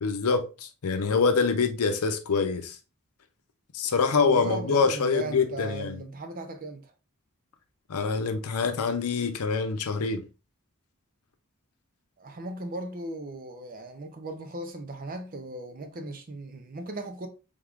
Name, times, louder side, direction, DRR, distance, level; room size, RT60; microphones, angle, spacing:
voice 1, 0.0-2.8 3.7-6.0 7.9-10.2, left 4 dB, 85° left, 0.6 m, -25 dB
voice 2, 4.1-6.9 12.2-17.3, right 2 dB, 40° right, 0.5 m, -37 dB
3.6 x 3.5 x 2.4 m
head